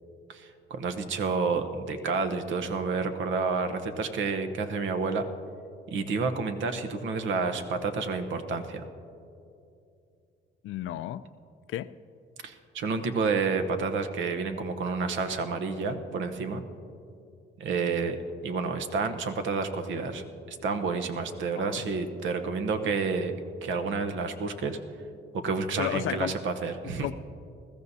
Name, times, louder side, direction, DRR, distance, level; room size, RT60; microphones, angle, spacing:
voice 1, 0.3-5.2 5.9-8.8 12.4-16.6 17.6-18.2 18.4-23.3 23.6-24.8 25.3-27.1, right 4 dB, 75° right, 1.0 m, -30 dB
voice 2, 10.6-11.2 11.7-11.9 21.6-21.9 25.8-26.4 27.0-27.1, left 12 dB, 80° left, 0.4 m, -32 dB
20.5 x 14.0 x 2.7 m
cardioid pair, 90°, 20 cm